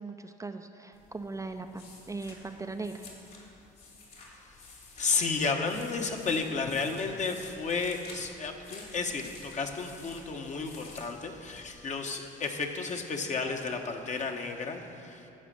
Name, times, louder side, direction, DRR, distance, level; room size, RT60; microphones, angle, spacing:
voice 1, 0.0-3.0, right 3 dB, 15° right, 6 dB, 0.6 m, -39 dB
sound 1, 0.9-11.9, left 3 dB, 55° left, 3.0 m, -51 dB
voice 2, 5.0-15.2, left 4 dB, 40° left, 3 dB, 1.2 m, -32 dB
13.0 x 5.0 x 7.6 m, 2.7 s
hypercardioid pair, 60°, 18 cm